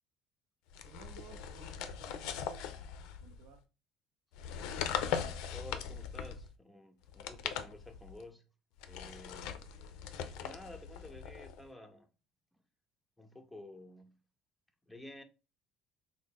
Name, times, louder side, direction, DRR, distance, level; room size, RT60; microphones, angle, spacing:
sound 1, 0.7-3.5 4.3-6.5 7.1-8.2 8.8-11.6, left 8 dB, 80° left, 0.4 m, -40 dB
voice 1, 0.9-2.7 3.2-3.6, right 6 dB, 85° right, 0.5 m, -56 dB
voice 2, 5.5-8.5 8.8-9.6 10.4-12.1 13.2-14.2 14.8-15.2, left 1 dB, 5° left, 0.4 m, -51 dB
3.7 x 2.1 x 3.5 m
cardioid pair, 160°, 0 cm